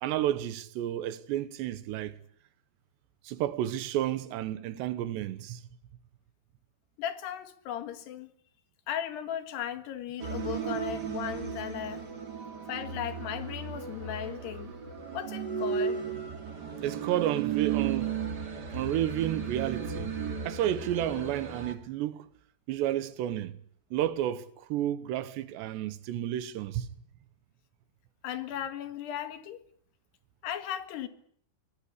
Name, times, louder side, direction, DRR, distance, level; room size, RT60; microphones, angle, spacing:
voice 1, 0.0-2.2 3.2-5.6 16.8-18.1 18.7-20.1 20.4-22.2 22.7-23.5 23.9-26.9, right 12 dB, 85° right, 3.4 m, -31 dB
voice 2, 7.0-8.3 8.9-12.0 12.7-14.7 15.1-16.0 28.2-29.6 30.4-31.1, left 10 dB, 75° left, 3.7 m, -36 dB
sound 1, 10.2-21.7, right 7 dB, 30° right, 2.2 m, -35 dB
23.5 x 18.5 x 10.0 m
omnidirectional pair, 4.9 m